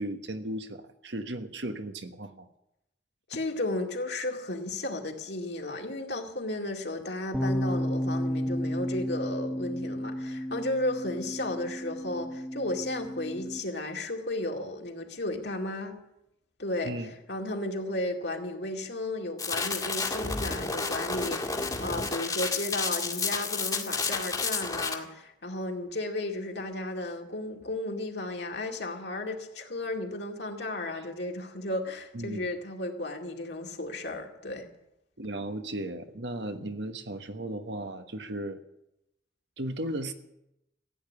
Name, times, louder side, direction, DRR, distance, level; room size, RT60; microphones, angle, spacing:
voice 1, 0.0-2.5 16.8-17.1 32.1-32.4 35.2-38.6 39.6-40.1, right 1 dB, 70° right, 1.4 m, -35 dB
voice 2, 3.3-16.0 16.6-34.7, left 2 dB, 65° left, 2.2 m, -34 dB
sound 1, 7.3-13.6, equal, 5° left, 1.0 m, -32 dB
sound 2, 19.4-24.9, left 4 dB, 20° left, 1.8 m, -31 dB
15.5 x 9.0 x 9.8 m
head